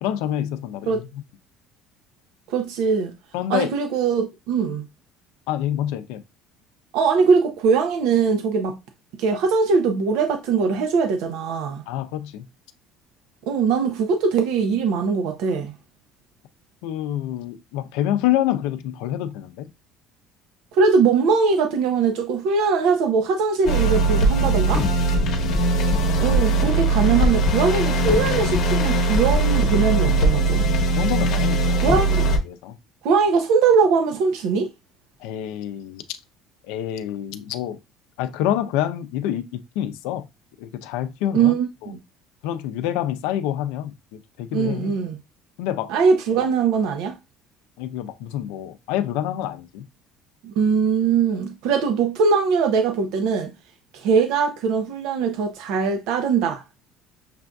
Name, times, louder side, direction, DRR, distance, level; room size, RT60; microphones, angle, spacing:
voice 1, 0.0-1.2 3.3-3.7 5.5-6.2 11.9-12.5 16.8-19.7 25.2-25.8 30.9-32.0 32.4-32.8 35.2-36.2 36.6-37.8 38.2-40.3 40.6-41.5 41.8-41.9 42.4-43.9 44.4-45.0 45.6-45.9 46.3-46.4 47.8-49.9, left 12 dB, 90° left, 0.5 m, -27 dB
voice 2, 2.5-3.1 3.5-4.9 6.9-8.8 9.2-11.8 13.5-15.7 20.7-24.8 26.2-30.7 31.8-32.3 33.0-34.7 41.3-42.0 44.5-45.2 45.9-47.2 50.4-53.5 53.9-56.6, right 5 dB, 65° right, 0.6 m, -21 dB
sound 1, 23.6-32.4, right 2 dB, 45° left, 0.9 m, -20 dB
6.6 x 2.5 x 2.3 m
cardioid pair, 180°, 0 cm